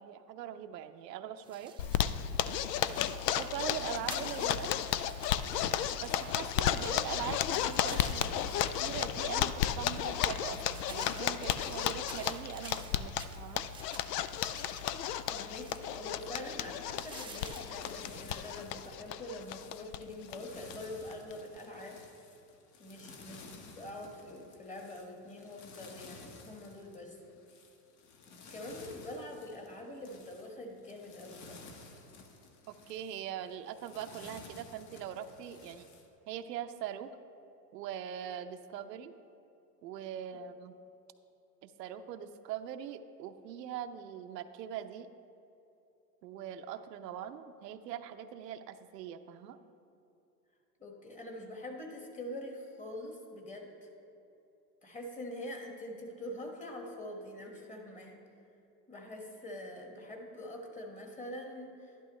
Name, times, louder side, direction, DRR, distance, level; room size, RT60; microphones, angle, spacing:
voice 1, 0.0-1.7 3.4-4.7 5.9-13.6 32.7-35.9 36.3-37.1 37.7-39.1 39.8-40.7 41.6-45.1 46.2-49.6, right 9 dB, 80° right, 8 dB, 0.7 m, -42 dB
sound 1, 1.4-18.9, right 5 dB, 10° right, 0.8 m, -53 dB
Zipper (clothing), 1.8-20.0 20.3-20.4 20.7-20.8 21.1-21.6, left 10 dB, 80° left, 0.6 m, -33 dB
voice 2, 15.3-22.0 22.8-27.2 28.5-31.7 50.8-53.9 54.8-58.2 58.9-62.1, left 1 dB, 15° left, 1 dB, 1.5 m, -44 dB
sound 2, 16.4-36.1, left 4 dB, 50° left, 1.5 m, -54 dB
11.5 x 11.5 x 3.2 m, 2.9 s
hypercardioid pair, 115°, 49 cm